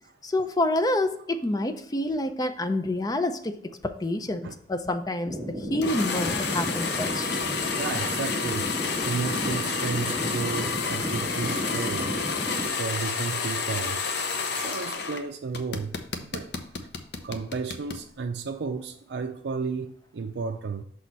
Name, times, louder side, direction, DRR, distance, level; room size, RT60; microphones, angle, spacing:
voice 1, 0.2-5.4 5.7-7.3, left 1 dB, 20° left, 0.5 m, -28 dB
sound 1, 5.3-12.7, left 1 dB, 5° left, 1.5 m, -33 dB
sound 2, 5.8-15.2 15.5-18.0, left 5 dB, 60° left, 0.7 m, -30 dB
voice 2, 7.8-12.1 12.8-14.0 14.6-16.5 17.2-20.8, right 4 dB, 65° right, 0.4 m, -33 dB
6.2 x 4.2 x 4.5 m
head